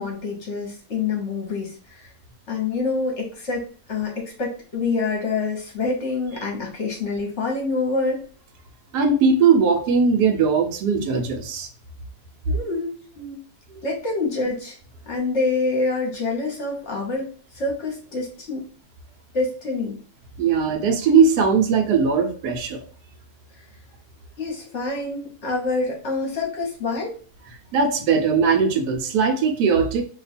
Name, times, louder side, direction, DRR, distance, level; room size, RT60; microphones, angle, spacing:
voice 1, 0.0-2.1 2.5-8.3 12.5-13.4 13.8-14.8 15.1-18.6 19.3-20.0 24.4-27.1, left 3 dB, 50° left, -1 dB, 1.0 m, -26 dB
voice 2, 8.9-11.7 20.4-22.8 27.7-30.0, right 5 dB, 75° right, 4 dB, 1.2 m, -19 dB
2.8 x 2.3 x 4.0 m, 0.40 s
omnidirectional pair, 1.7 m